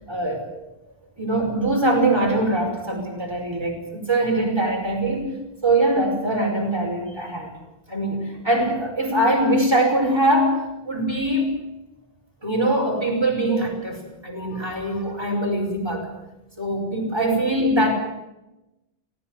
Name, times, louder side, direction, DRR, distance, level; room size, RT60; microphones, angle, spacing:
voice 1, 0.1-0.5 1.2-7.5 7.9-11.6 12.4-16.1 16.6-17.9, right 1 dB, 25° right, 0 dB, 5.6 m, -22 dB
18.0 x 17.0 x 9.2 m, 0.96 s
omnidirectional pair, 1.1 m